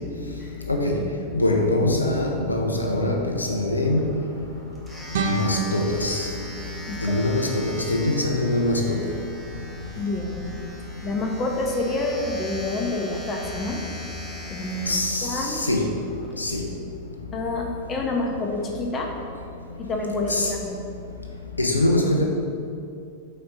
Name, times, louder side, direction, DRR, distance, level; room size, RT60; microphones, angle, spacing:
voice 1, 0.7-1.0 1.3-4.1 5.2-6.3 7.0-9.0 14.9-15.8 16.4-16.6 20.3-20.5 21.6-22.2, left 1 dB, 80° left, 1 dB, 0.5 m, -23 dB
Domestic sounds home sounds, 3.8-16.3, left 1 dB, ahead, 1.3 m, -41 dB
sound 1, 5.1-8.1, right 4 dB, 55° right, 0.5 m, -31 dB
voice 2, 10.0-10.4 11.0-13.8 14.5-15.6 17.3-19.1 19.8-20.8, left 2 dB, 25° left, 1 dB, 0.8 m, -28 dB
4.3 x 4.3 x 5.3 m, 2.5 s
figure-of-eight pair, 90°, 0 cm